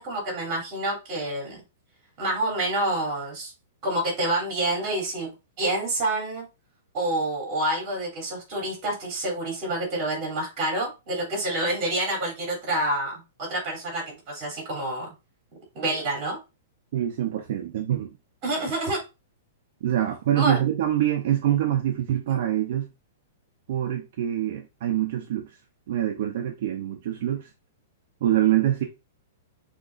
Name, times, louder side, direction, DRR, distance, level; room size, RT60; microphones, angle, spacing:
voice 1, 0.0-1.6 2.2-3.5 3.8-5.3 5.6-6.4 6.9-15.1 15.7-16.4 18.4-19.0 20.4-20.6, right 1 dB, 25° right, 2.9 m, -28 dB
voice 2, 16.9-18.2 19.8-22.9 23.7-25.6 25.9-27.5 28.2-28.8, right 12 dB, 50° right, 0.6 m, -25 dB
6.4 x 2.9 x 2.5 m
supercardioid pair, 170°, 0 cm